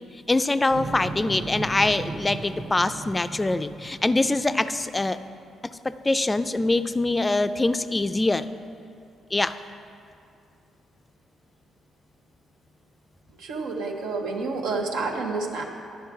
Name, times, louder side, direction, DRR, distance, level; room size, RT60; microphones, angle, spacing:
voice 1, 0.3-5.2 5.8-8.5 9.3-9.6, left 2 dB, 20° left, 11 dB, 0.3 m, -24 dB
sound 1, 0.7-4.8, right 3 dB, 35° right, 0.6 m, -37 dB
voice 2, 13.4-15.6, right 3 dB, 90° right, 0 dB, 1.0 m, -29 dB
10.5 x 6.3 x 4.7 m, 2.5 s
cardioid pair, 90°, 0 cm